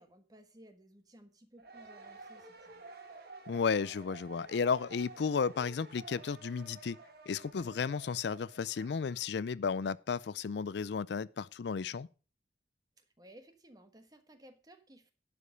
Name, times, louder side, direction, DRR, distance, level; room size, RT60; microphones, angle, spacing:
voice 1, 0.0-2.8 13.0-15.1, equal, 20° right, 1.3 m, -58 dB
sound 1, 1.6-9.3, right 3 dB, 55° right, 1.7 m, -52 dB
voice 2, 3.5-7.0 7.3-12.1, left 5 dB, 65° left, 0.4 m, -33 dB
11.0 x 5.2 x 6.2 m
head